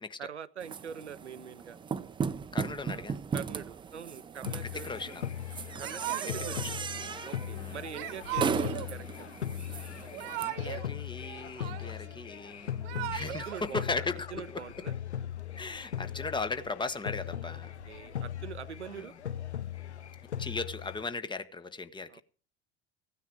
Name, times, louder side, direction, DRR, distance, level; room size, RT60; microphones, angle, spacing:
voice 1, 0.2-1.8 2.9-3.1 3.3-5.2 5.8-6.7 7.2-9.3 13.3-14.0 14.3-14.9 17.4-19.1 22.1-22.2, right 8 dB, 85° right, 0.6 m, -44 dB
sound 1, 0.6-10.4, right 6 dB, 15° right, 0.5 m, -37 dB
voice 2, 2.5-3.2 4.7-5.2 6.5-6.8 7.5-7.8 10.4-14.6 15.6-17.7 18.9-19.1 20.4-22.2, left 3 dB, 15° left, 0.9 m, -37 dB
sound 2, 4.4-21.0, left 10 dB, 80° left, 0.6 m, -39 dB
Yell / Crying sobbing, 5.8-6.6 7.9-8.9 10.0-10.9 11.2-12.1 12.7-13.6, right 16 dB, 60° right, 1.1 m, -38 dB
16.0 x 9.5 x 4.8 m
figure-of-eight pair, 70°, 33 cm